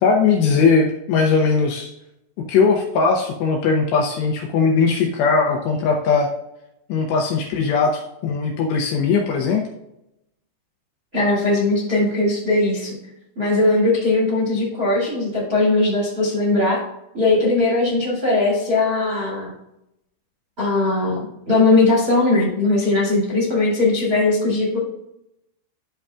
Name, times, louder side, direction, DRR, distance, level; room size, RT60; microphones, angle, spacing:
voice 1, 0.0-1.9 2.5-6.3 6.9-9.6, left 5 dB, 75° left, 1 dB, 2.7 m, -19 dB
voice 2, 11.1-13.0 13.4-16.8 17.1-19.5 20.6-21.2 21.5-24.8, left 2 dB, 25° right, -4 dB, 1.9 m, -19 dB
12.5 x 5.3 x 2.4 m, 0.85 s
omnidirectional pair, 5.7 m